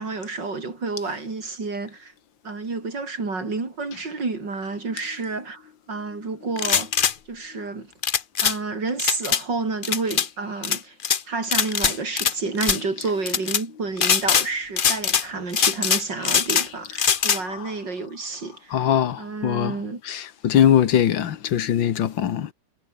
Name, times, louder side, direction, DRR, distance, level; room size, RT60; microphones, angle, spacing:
voice 1, 0.0-2.1 2.4-5.6 5.9-6.9 7.3-7.9 8.4-10.9 11.3-18.8 19.2-20.0, right 3 dB, 70° right, 5.0 m, -30 dB
sound 1, 6.6-7.1 8.0-8.6 9.0-9.4 9.8-10.3 10.6-11.2 11.5-12.3 12.6-12.8 13.3-13.6 14.0-14.5 14.8-15.2 15.5-16.7 17.0-17.4, left 7 dB, 45° left, 0.7 m, -21 dB
voice 2, 18.7-19.8 20.0-22.5, left 9 dB, 90° left, 2.0 m, -21 dB
omnidirectional pair, 2.0 m